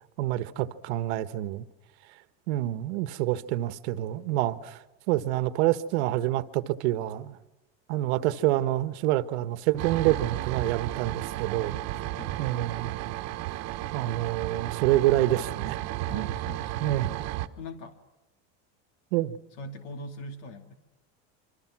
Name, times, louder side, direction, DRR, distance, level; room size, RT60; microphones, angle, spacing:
voice 1, 0.2-1.6 2.5-4.8 5.1-7.4 7.9-11.8 12.4-13.0 13.9-15.8 16.1-16.5 16.8-17.1 19.1-19.4, right 15 dB, 85° right, 1.5 m, -27 dB
sound 1, 9.8-17.5, right 14 dB, 50° right, 1.3 m, -33 dB
voice 2, 16.1-16.9 17.6-18.0 19.6-20.8, left 1 dB, 70° left, 2.7 m, -41 dB
27.0 x 26.0 x 6.2 m
cardioid pair, 160°, 33 cm